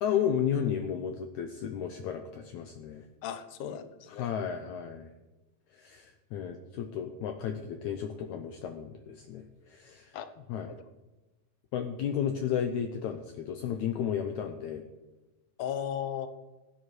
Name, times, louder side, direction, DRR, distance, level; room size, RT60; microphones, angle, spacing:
voice 1, 0.0-3.1 4.2-5.1 5.7-10.1 10.5-10.7 11.7-14.8, left 8 dB, 90° left, 6 dB, 1.7 m, -33 dB
voice 2, 3.2-4.3 10.1-10.3 10.6-10.8 15.6-16.3, left 9 dB, 75° left, 10 dB, 2.1 m, -36 dB
15.5 x 11.0 x 3.2 m, 1.1 s
omnidirectional pair, 4.1 m